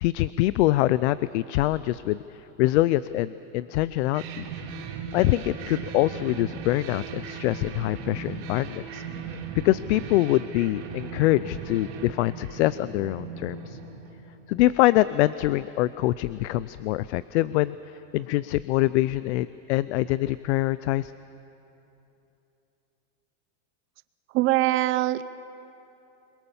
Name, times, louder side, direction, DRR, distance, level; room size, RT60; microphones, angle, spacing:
voice 1, 0.0-2.2 2.6-4.5 5.1-9.0 9.6-13.8 14.5-17.8 18.1-21.1, left 16 dB, 65° left, 17 dB, 0.6 m, -24 dB
sound 1, 4.1-14.7, right 5 dB, 55° right, 3.8 m, -38 dB
voice 2, 24.3-25.2, right 17 dB, 35° right, 14 dB, 0.6 m, -22 dB
27.0 x 22.5 x 7.1 m, 2.9 s
supercardioid pair, 155°, 37 cm